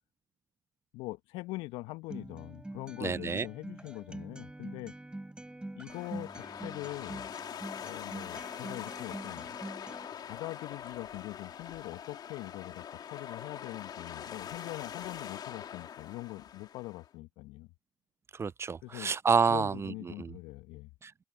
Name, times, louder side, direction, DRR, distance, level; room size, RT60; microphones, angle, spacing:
voice 1, 0.9-4.9 5.8-7.3 7.8-9.6 10.2-17.7 18.8-19.1 19.5-20.9, left 20 dB, 65° left, 1.3 m, -42 dB
Acoustic guitar, 2.1-10.1, right 1 dB, 10° right, 7.4 m, -45 dB
voice 2, 3.0-3.5 18.3-20.3 21.0-21.3, right 5 dB, 25° right, 0.6 m, -29 dB
sound 1, 5.9-17.1, left 9 dB, 45° left, 3.3 m, -43 dB
open air
hypercardioid pair, 65°, 10 cm